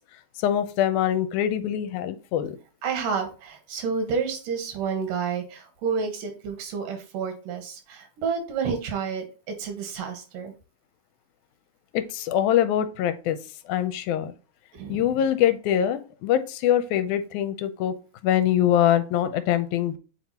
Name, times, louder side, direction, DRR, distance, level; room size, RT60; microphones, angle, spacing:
voice 1, 0.4-2.6 11.9-13.4 13.7-14.3 14.9-18.0 18.2-20.0, left 10 dB, 80° left, 10 dB, 2.0 m, -23 dB
voice 2, 2.8-10.5 14.7-15.1, right 5 dB, 85° right, 5 dB, 2.9 m, -30 dB
7.8 x 4.5 x 2.9 m, 0.34 s
omnidirectional pair, 3.7 m